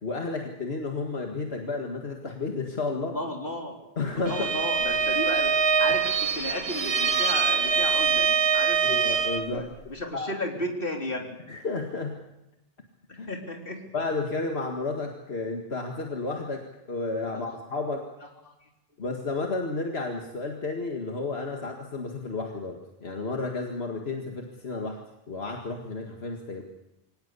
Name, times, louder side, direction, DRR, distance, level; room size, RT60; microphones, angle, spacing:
voice 1, 0.0-3.2 4.0-4.5 8.8-9.7 10.1-10.3 11.5-12.3 13.2-13.3 13.9-18.1 19.0-25.0 25.3-26.6, left 3 dB, 80° left, 2 dB, 2.2 m, -32 dB
voice 2, 3.0-3.8 4.2-5.5 5.8-8.9 9.4-11.4 13.1-13.8 17.3-17.4, left 1 dB, 60° left, 2 dB, 3.9 m, -34 dB
Bowed string instrument, 4.2-9.5, right 6 dB, 75° right, 1.5 m, -24 dB
24.5 x 18.5 x 8.4 m, 0.91 s
omnidirectional pair, 1.0 m